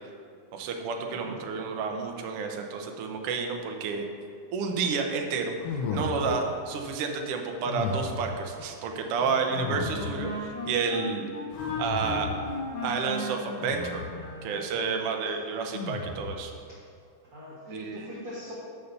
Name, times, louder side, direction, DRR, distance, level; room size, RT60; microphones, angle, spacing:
voice 1, 0.5-4.1 4.5-5.5 5.9-11.3 11.8-12.3 12.8-14.0 14.4-16.5 17.7-18.2, right 5 dB, 80° right, 3 dB, 1.3 m, -30 dB
voice 2, 1.1-1.4 16.7-16.9 17.2-18.5, equal, 45° right, -8 dB, 1.2 m, -42 dB
sound 1, 5.6-6.6 7.7-8.4 9.5-10.3 11.5-12.5 13.6-14.2 15.7-16.5, left 3 dB, 70° left, 1.4 m, -34 dB
Wind instrument woodwind instrument, 9.2-14.5, left 2 dB, 55° left, 1.5 m, -36 dB
6.0 x 5.6 x 6.5 m, 2.4 s
omnidirectional pair, 3.6 m